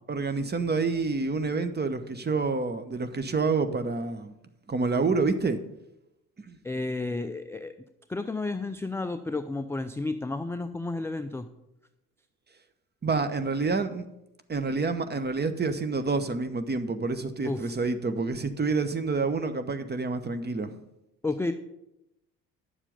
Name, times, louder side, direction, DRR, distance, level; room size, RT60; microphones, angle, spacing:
voice 1, 0.1-4.3 4.7-5.6 6.4-6.6 13.0-14.1 14.5-20.7, right 4 dB, 20° right, 10 dB, 1.0 m, -28 dB
voice 2, 6.6-7.7 8.1-11.5 17.4-17.8 21.2-21.5, left 2 dB, 5° left, 9 dB, 0.4 m, -31 dB
10.0 x 7.3 x 5.2 m, 0.89 s
hypercardioid pair, 55°, 46 cm